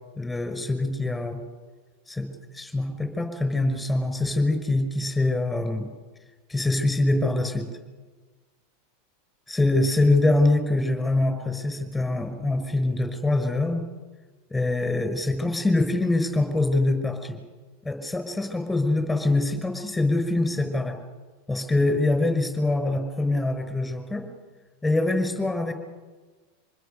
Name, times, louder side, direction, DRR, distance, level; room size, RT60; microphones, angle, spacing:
voice 1, 0.2-1.4 2.1-2.3 2.5-5.9 6.5-7.7 9.5-13.9 14.5-17.4 17.8-21.0 21.5-24.3 24.8-25.7, left 2 dB, 5° left, 7 dB, 5.6 m, -24 dB
26.5 x 20.5 x 6.9 m, 1.3 s
hypercardioid pair, 100°, 0 cm